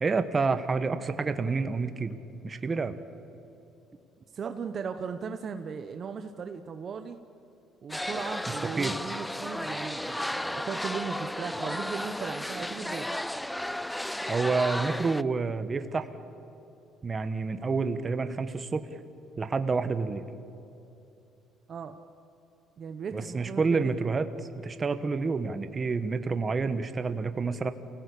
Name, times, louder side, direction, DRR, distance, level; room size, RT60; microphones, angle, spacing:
voice 1, 0.0-2.2 2.4-2.9 8.8-9.0 14.3-16.1 17.0-18.8 19.4-20.2 23.1-24.3 24.6-27.7, right 4 dB, 25° right, 10 dB, 1.3 m, -28 dB
voice 2, 4.3-7.2 7.8-13.1 21.7-22.0 22.8-23.9, right 6 dB, 40° right, 7 dB, 1.0 m, -37 dB
sound 1, 7.9-15.2, left 1 dB, 5° left, 0.5 m, -34 dB
29.0 x 17.5 x 8.5 m, 2.8 s
cardioid pair, 125°, 0 cm